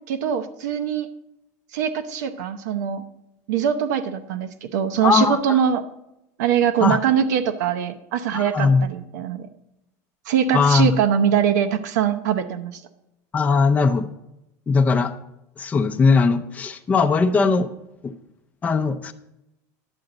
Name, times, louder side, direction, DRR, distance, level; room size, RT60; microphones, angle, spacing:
voice 1, 0.1-1.1 1.7-3.0 3.5-5.8 6.4-9.5 10.3-12.8, right 8 dB, 85° right, 9 dB, 0.8 m, -22 dB
voice 2, 5.0-5.6 6.8-7.0 8.3-8.9 10.5-11.0 13.3-14.1 14.7-15.1 15.6-17.7 18.0-18.1 18.6-19.1, left 4 dB, 15° left, 6 dB, 0.5 m, -19 dB
11.0 x 7.7 x 3.9 m, 0.88 s
supercardioid pair, 145°, 9 cm